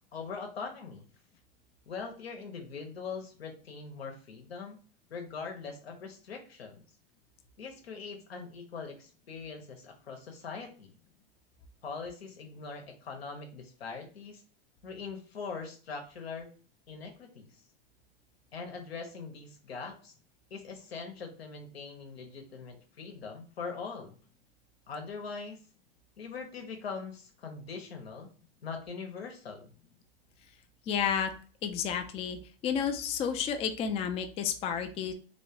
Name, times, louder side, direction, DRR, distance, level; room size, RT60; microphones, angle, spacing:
voice 1, 0.1-1.1 1.9-4.8 5.1-6.8 7.6-10.9 11.8-14.4 14.8-16.5 16.9-17.5 18.5-20.1 20.5-24.2 24.9-25.6 26.2-28.3 28.6-29.7, left 5 dB, 85° left, 3 dB, 1.1 m, -42 dB
voice 2, 30.9-31.3 31.6-35.1, left 7 dB, 20° left, 6 dB, 0.4 m, -31 dB
3.4 x 3.1 x 2.9 m, 0.39 s
hypercardioid pair, 110°, 30 cm